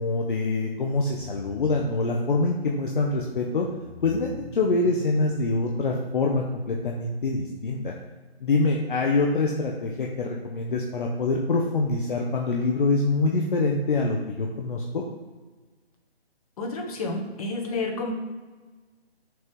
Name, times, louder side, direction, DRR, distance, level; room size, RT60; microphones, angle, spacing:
voice 1, 0.0-3.7 4.0-7.9 8.4-15.0, left 3 dB, 50° left, 0 dB, 0.8 m, -25 dB
sound 1, 1.2-6.5, left 2 dB, 10° right, 0.4 m, -44 dB
voice 2, 16.6-18.1, left 3 dB, 35° left, 1 dB, 1.2 m, -30 dB
6.2 x 3.2 x 5.3 m, 1.3 s
figure-of-eight pair, 155°, 32 cm